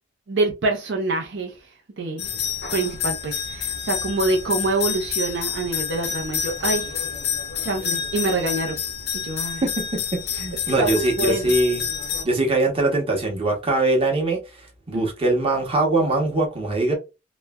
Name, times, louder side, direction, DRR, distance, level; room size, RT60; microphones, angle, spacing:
voice 1, 0.3-1.6 2.0-2.3 2.7-6.9 7.6-8.8 9.1-9.6 10.8-11.5 14.9-15.0, right 2 dB, 65° right, 0.6 m, -25 dB
sound 1, 2.2-12.2, left 7 dB, 55° left, 0.6 m, -28 dB
voice 2, 9.6-11.8 12.2-14.4 14.9-16.9, right 2 dB, 30° right, 0.9 m, -22 dB
3.0 x 2.2 x 2.2 m
head